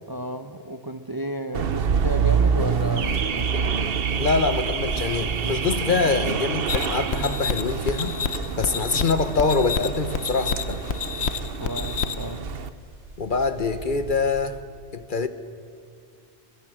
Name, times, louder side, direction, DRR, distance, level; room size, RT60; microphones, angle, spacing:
voice 1, 0.1-4.0 8.7-8.8 11.6-12.4, right 1 dB, 20° right, 9 dB, 0.7 m, -33 dB
Car / Alarm, 1.5-12.7, right 6 dB, 60° right, 1.1 m, -27 dB
voice 2, 4.2-8.2 8.6-10.8 13.2-14.6 14.9-15.3, left 4 dB, 50° left, 10 dB, 1.2 m, -24 dB
sound 1, 4.3-14.3, right 1 dB, 80° right, 4.3 m, -47 dB
sound 2, 6.7-12.4, left 6 dB, 70° left, 1.2 m, -29 dB
24.0 x 22.5 x 7.6 m, 2.1 s
omnidirectional pair, 1.2 m